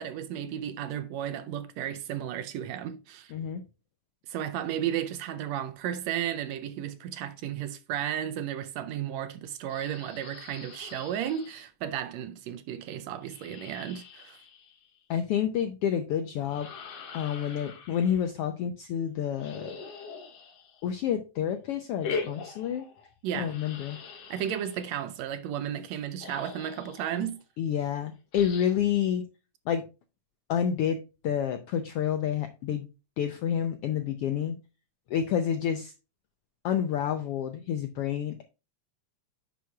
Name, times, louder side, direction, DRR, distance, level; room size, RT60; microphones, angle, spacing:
voice 1, 0.0-3.3 4.3-14.4 23.2-23.5 24.3-27.4, right 10 dB, 75° right, 1.7 m, -34 dB
voice 2, 3.3-3.6 15.1-16.7 17.1-19.7 20.8-22.8 23.3-24.0 27.6-29.3 29.7-29.9 30.5-32.9 33.2-34.6 35.1-35.9 36.6-38.4, left 9 dB, 85° left, 1.3 m, -29 dB
sound 1, 9.7-11.6 13.2-15.0 16.4-18.3 19.4-21.0 22.0-23.1 23.4-25.0 25.9-26.0 26.2-27.3 28.3-28.9, left 5 dB, 60° left, 2.2 m, -42 dB
10.5 x 6.3 x 2.3 m
omnidirectional pair, 3.4 m